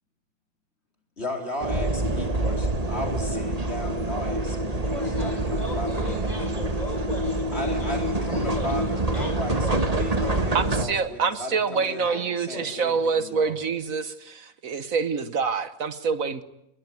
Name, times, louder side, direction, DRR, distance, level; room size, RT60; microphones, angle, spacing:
voice 1, 1.2-6.1 7.5-12.1 12.4-13.6, left 1 dB, 45° left, 3 dB, 4.5 m, -35 dB
sound 1, 1.6-10.8, right 1 dB, 25° right, 1.7 m, -26 dB
voice 2, 4.8-9.3 9.6-9.9 11.7-12.2 12.5-12.8, equal, 30° left, 3 dB, 7.2 m, -38 dB
voice 3, 10.5-16.4, right 5 dB, 70° right, 12 dB, 1.6 m, -26 dB
28.0 x 21.0 x 9.5 m, 0.83 s
omnidirectional pair, 1.5 m